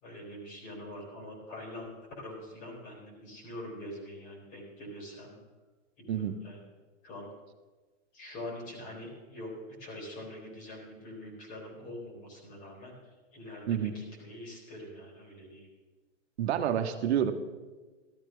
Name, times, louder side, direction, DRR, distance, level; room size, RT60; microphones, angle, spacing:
voice 1, 0.0-5.4 6.0-6.6 7.0-7.3 8.1-12.9 13.3-15.7, left 1 dB, 35° left, 0 dB, 3.7 m, -44 dB
voice 2, 16.4-17.3, right 9 dB, 60° right, 8 dB, 1.1 m, -28 dB
13.5 x 13.0 x 3.8 m, 1.3 s
hypercardioid pair, 155°, 37 cm